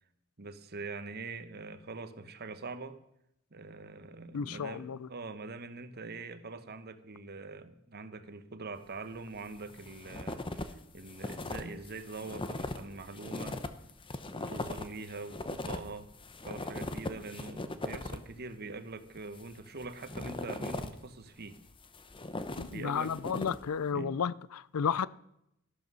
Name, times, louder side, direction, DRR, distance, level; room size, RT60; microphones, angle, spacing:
voice 1, 0.4-3.0 3.5-13.6 14.3-16.1 16.4-21.6 22.7-23.1 23.9-24.1, right 3 dB, 45° right, 1.0 m, -43 dB
voice 2, 4.3-5.1 22.6-25.1, left 7 dB, 85° left, 0.5 m, -32 dB
sound 1, 9.4-10.7 11.0-18.3 19.1-21.0 21.6-23.8, left 2 dB, 25° left, 0.8 m, -39 dB
13.5 x 12.5 x 5.5 m
head